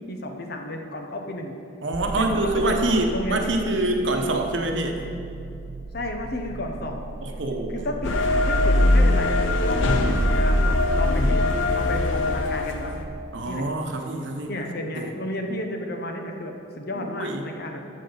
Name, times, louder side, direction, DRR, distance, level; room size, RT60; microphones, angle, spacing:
voice 1, 0.0-1.6 2.1-3.6 5.9-7.0 7.7-8.2 8.4-12.9 13.4-13.7 14.5-17.8, left 1 dB, 55° left, 3 dB, 0.9 m, -32 dB
voice 2, 1.8-5.1 7.2-7.9 11.1-11.3 13.3-14.5 14.9-15.1 17.0-17.5, right 2 dB, 70° right, 3 dB, 1.0 m, -26 dB
sound 1, 1.9-13.2, right 2 dB, 50° right, 0.4 m, -36 dB
sound 2, 8.0-13.0, left 1 dB, 85° left, 0.8 m, -21 dB
12.5 x 7.6 x 4.0 m, 2.5 s
head